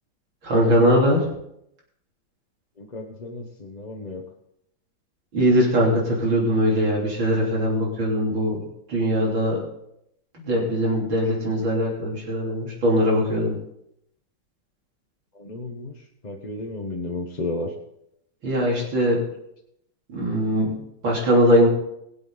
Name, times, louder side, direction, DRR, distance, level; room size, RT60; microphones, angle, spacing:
voice 1, 0.4-1.3 5.3-8.6 8.9-9.6 10.3-13.6 18.4-19.2 20.1-20.7 21.0-21.7, equal, 80° right, -3 dB, 4.2 m, -21 dB
voice 2, 2.8-4.2 15.3-15.9 16.2-17.7, left 2 dB, 25° left, 1 dB, 1.0 m, -33 dB
22.0 x 7.7 x 4.1 m, 0.78 s
omnidirectional pair, 2.1 m